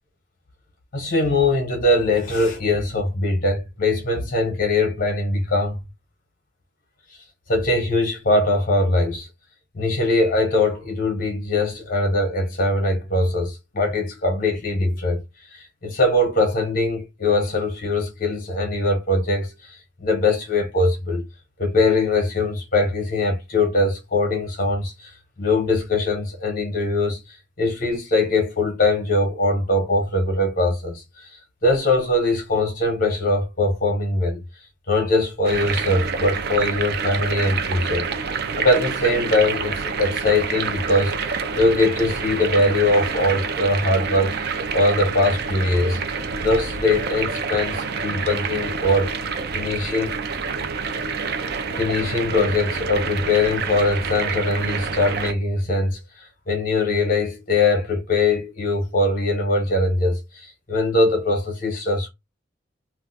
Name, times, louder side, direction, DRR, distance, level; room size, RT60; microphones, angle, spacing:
voice 1, 0.9-5.8 7.5-9.3 9.7-15.2 15.5-21.2 21.6-25.1 25.4-27.2 27.6-31.3 31.6-34.4 34.9-41.2 41.5-44.5 44.7-46.0 46.4-49.1 49.5-50.1 51.7-56.0 56.5-62.1, left 2 dB, 45° left, 0.8 m, -21 dB
sound 1, 35.4-55.3, right 5 dB, 55° right, 0.4 m, -27 dB
2.4 x 2.3 x 3.8 m
head